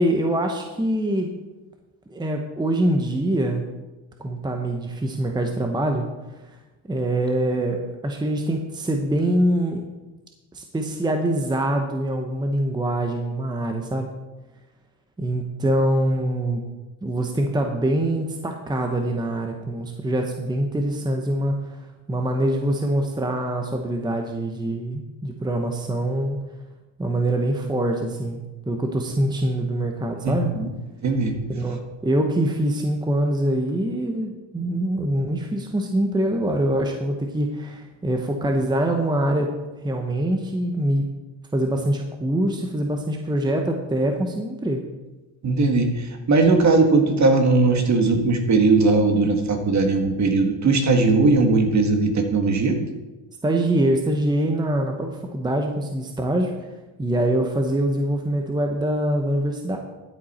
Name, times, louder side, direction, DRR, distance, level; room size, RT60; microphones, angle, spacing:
voice 1, 0.0-1.3 2.1-3.6 4.2-6.1 6.9-9.8 10.5-14.1 15.2-16.6 17.0-26.4 27.0-28.4 28.7-30.5 31.5-39.5 39.8-41.0 41.5-44.8 53.4-56.5 57.0-59.8, right 1 dB, 10° right, 3 dB, 1.0 m, -24 dB
voice 2, 30.2-30.7 31.0-31.4 45.4-52.8, right 3 dB, 40° right, 5 dB, 1.8 m, -19 dB
13.0 x 8.0 x 4.3 m, 1.1 s
cardioid pair, 115°, 45 cm